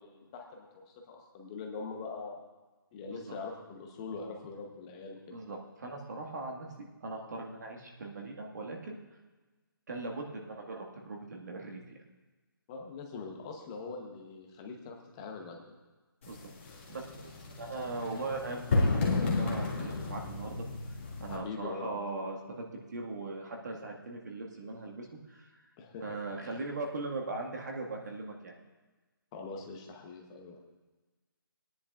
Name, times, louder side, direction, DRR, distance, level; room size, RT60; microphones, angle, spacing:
voice 1, 0.0-2.4 2.9-5.3 12.7-15.6 21.3-22.0 25.8-26.1 26.4-26.6 29.3-30.6, left 4 dB, 15° left, 1 dB, 0.8 m, -43 dB
voice 2, 5.3-6.7 7.0-8.9 9.9-12.0 16.3-16.4 16.9-20.7 21.2-25.6 26.0-28.5, right 3 dB, 50° right, 0 dB, 1.7 m, -40 dB
sound 1, 16.2-21.4, left 3 dB, 35° left, 1.9 m, -32 dB
20.5 x 10.0 x 2.4 m, 1.2 s
hypercardioid pair, 170°, 12 cm